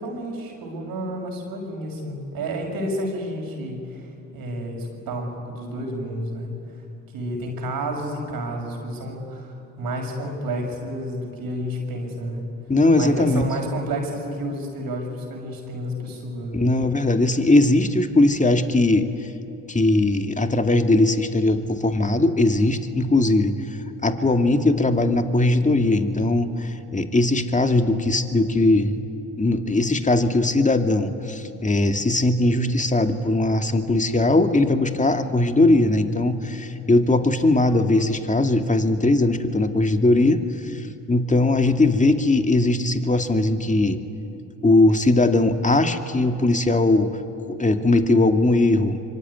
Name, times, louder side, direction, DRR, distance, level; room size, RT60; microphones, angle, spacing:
voice 1, 0.0-6.5 7.1-12.4 12.9-16.8, right 1 dB, 70° right, 2 dB, 6.1 m, -30 dB
voice 2, 12.7-13.4 16.5-19.1 19.7-23.6 24.0-29.0 29.4-44.0 44.6-47.1 47.5-49.0, left 2 dB, 20° left, 6 dB, 2.4 m, -19 dB
25.0 x 24.5 x 9.7 m, 2.9 s
hypercardioid pair, 50°, 37 cm